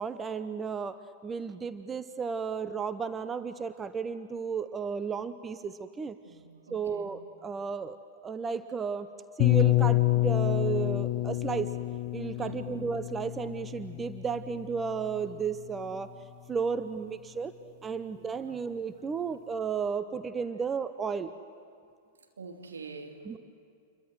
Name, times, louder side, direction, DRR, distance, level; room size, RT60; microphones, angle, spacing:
voice 1, 0.0-6.2 6.7-8.0 8.2-9.1 9.4-11.7 12.1-16.1 16.5-17.5 17.8-21.3 23.3-23.4, right 6 dB, 20° right, 12 dB, 0.8 m, -33 dB
voice 2, 6.2-7.1 12.4-12.7 17.9-18.6 22.4-23.2, right 4 dB, 75° right, 3 dB, 2.6 m, -46 dB
sound 1, 9.4-15.2, left 17 dB, 40° left, 1.1 m, -28 dB
28.0 x 23.0 x 7.8 m, 2.3 s
figure-of-eight pair, 100°, 0 cm